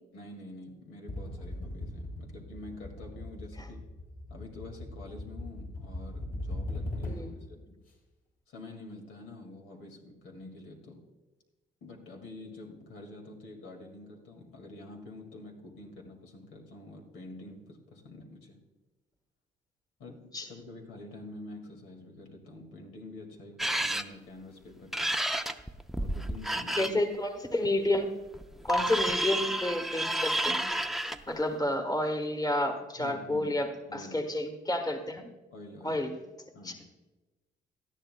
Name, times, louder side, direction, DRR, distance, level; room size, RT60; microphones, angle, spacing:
voice 1, 0.1-3.8 4.3-7.8 8.5-11.0 11.8-18.6 20.0-25.2 26.0-27.0 28.8-28.9 33.0-33.5 33.9-34.2 35.5-36.0 36.5-36.9, left 2 dB, 85° left, 2 dB, 2.1 m, -47 dB
sound 1, 1.1-7.5, left 1 dB, 50° left, 3.6 m, -39 dB
sound 2, 23.6-24.0 24.9-26.9 28.3-31.2, right 1 dB, ahead, 0.6 m, -30 dB
voice 2, 26.8-28.1 28.6-30.6 31.3-35.3 35.8-36.1 36.6-36.7, left 1 dB, 20° left, 5 dB, 1.4 m, -30 dB
18.5 x 13.0 x 2.2 m, 1.2 s
cardioid pair, 90°, 20 cm